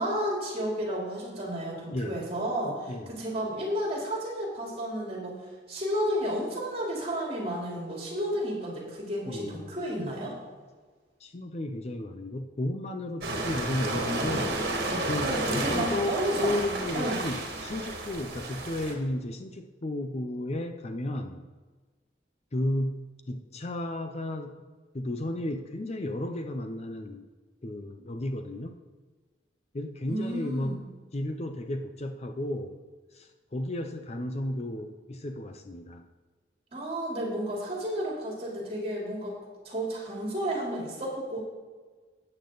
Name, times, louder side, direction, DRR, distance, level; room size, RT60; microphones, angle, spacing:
voice 1, 0.0-5.4 5.7-10.4 15.2-16.5 16.9-17.2 30.1-30.8 36.7-39.4 39.6-41.4, equal, 35° right, -3 dB, 3.6 m, -32 dB
voice 2, 9.3-9.7 11.2-14.6 15.1-21.4 22.5-24.5 24.9-27.3 27.6-28.8 29.7-30.8 31.1-32.8 33.1-36.1, left 1 dB, 35° left, 6 dB, 0.6 m, -33 dB
sound 1, 13.2-18.9, right 2 dB, 60° right, 2.0 m, -31 dB
13.0 x 8.8 x 4.0 m, 1.4 s
head